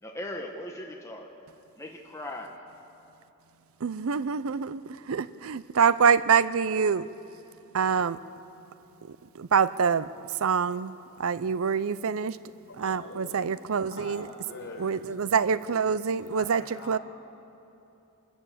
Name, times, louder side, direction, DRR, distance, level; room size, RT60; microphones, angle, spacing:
voice 1, 0.0-1.3 1.8-2.6 14.6-14.8, left 1 dB, 15° left, 1 dB, 1.3 m, -39 dB
voice 2, 3.8-7.1 7.7-8.2 9.0-12.4 12.8-14.2 14.8-17.0, right 6 dB, 70° right, 16 dB, 0.5 m, -26 dB
voice 3, 12.7-13.4 13.9-15.0 16.3-17.0, left 2 dB, 60° left, 1 dB, 4.6 m, -43 dB
27.5 x 14.0 x 8.4 m, 2.9 s
head